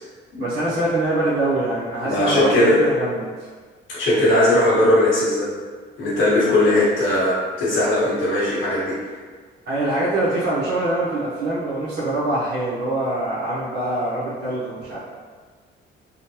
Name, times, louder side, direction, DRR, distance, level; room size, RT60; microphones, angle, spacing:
voice 1, 0.4-3.3 9.7-15.0, right 2 dB, 60° right, -9 dB, 0.8 m, -24 dB
voice 2, 2.0-2.8 3.9-5.5 6.0-8.9, left 1 dB, 85° left, -8 dB, 1.3 m, -18 dB
3.6 x 2.1 x 2.8 m, 1.5 s
cardioid pair, 90°, 20 cm